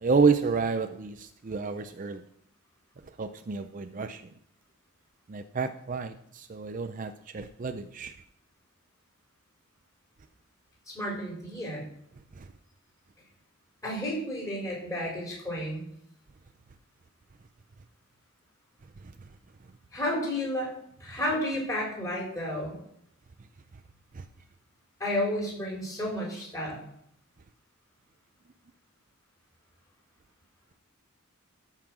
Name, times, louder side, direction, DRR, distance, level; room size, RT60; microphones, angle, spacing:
voice 1, 0.0-2.2 3.2-4.2 5.3-8.1, right 5 dB, 35° right, 9 dB, 0.4 m, -29 dB
voice 2, 10.9-11.8 13.8-15.8 19.9-20.7 21.0-22.7 25.0-26.8, left 1 dB, 15° left, -3 dB, 4.8 m, -31 dB
13.5 x 5.7 x 6.1 m, 0.71 s
head